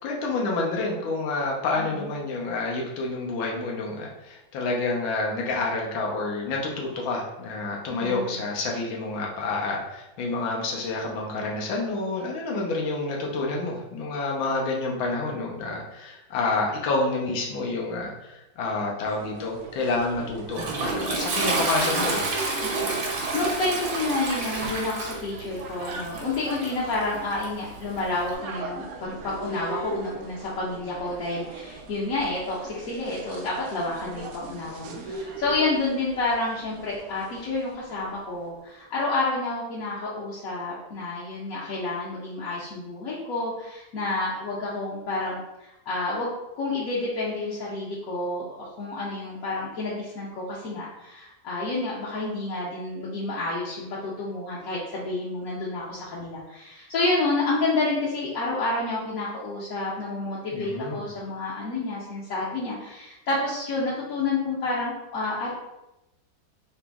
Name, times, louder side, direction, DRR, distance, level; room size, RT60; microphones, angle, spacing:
voice 1, 0.0-22.3 60.5-61.0, left 3 dB, 80° left, -1 dB, 1.6 m, -28 dB
voice 2, 1.8-2.1 7.9-8.4 22.8-65.5, left 2 dB, 55° left, -8 dB, 1.1 m, -29 dB
sound 1, 19.0-38.3, right 3 dB, 85° right, 0.8 m, -40 dB
Toilet flush, 20.0-28.3, right 3 dB, 70° right, 1.4 m, -30 dB
4.0 x 2.9 x 3.4 m, 0.94 s
omnidirectional pair, 2.1 m